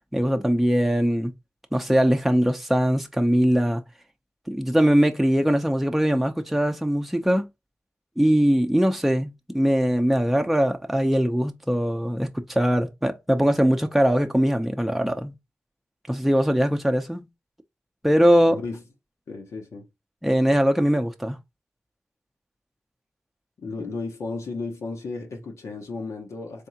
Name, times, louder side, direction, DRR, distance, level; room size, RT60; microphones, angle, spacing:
voice 1, 0.1-1.3 1.7-3.8 4.5-7.4 8.2-15.3 16.1-17.3 18.0-18.6 20.2-21.4, equal, 5° right, 0.6 m, -21 dB
voice 2, 18.5-18.8 19.3-19.9 23.6-26.7, left 3 dB, 80° left, 0.9 m, -34 dB
3.5 x 3.5 x 2.8 m
cardioid pair, 50°, 5 cm